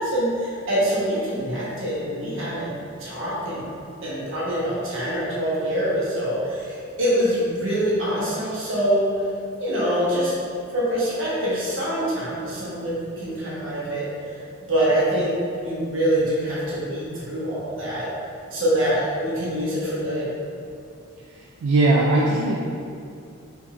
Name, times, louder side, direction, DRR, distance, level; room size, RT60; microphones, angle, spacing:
voice 1, 0.0-2.7 3.0-3.6 4.0-9.1 9.6-10.3 10.7-14.1 14.7-15.3 15.6-18.1 18.5-20.3, equal, 60° right, -8 dB, 1.1 m, -24 dB
voice 2, 21.6-22.5, right 2 dB, 75° right, -3 dB, 0.4 m, -18 dB
3.5 x 3.4 x 3.0 m, 2.5 s
head